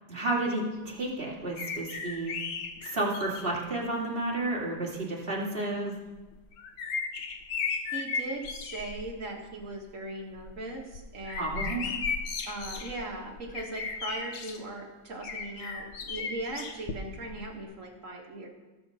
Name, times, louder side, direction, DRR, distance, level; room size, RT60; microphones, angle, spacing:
voice 1, 0.1-2.4 2.8-5.9 11.3-12.0, right 2 dB, 30° right, -4 dB, 2.7 m, -31 dB
sound 1, 1.6-3.6 4.5-4.6 6.2-9.1 9.4-9.8 10.2-14.6 15.2-17.4 17.6-17.7, left 5 dB, 85° left, 1.6 m, -36 dB
voice 2, 7.9-11.7 12.5-18.5, right 2 dB, 50° right, 0 dB, 2.0 m, -39 dB
17.5 x 7.3 x 4.3 m, 1.2 s
omnidirectional pair, 1.8 m